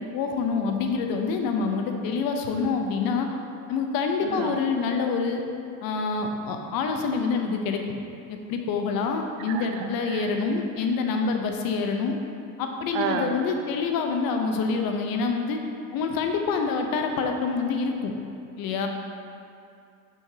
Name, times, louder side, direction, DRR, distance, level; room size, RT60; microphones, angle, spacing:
voice 1, 0.1-3.3 3.7-5.4 5.8-7.8 8.3-12.2 12.6-15.6 15.9-18.1 18.6-18.9, left 4 dB, 60° left, 4 dB, 0.8 m, -26 dB
voice 2, 4.2-4.6 9.5-10.3 12.9-13.5, right 7 dB, 75° right, 6 dB, 0.6 m, -31 dB
6.1 x 5.7 x 2.8 m, 2.5 s
supercardioid pair, 85°, 40 cm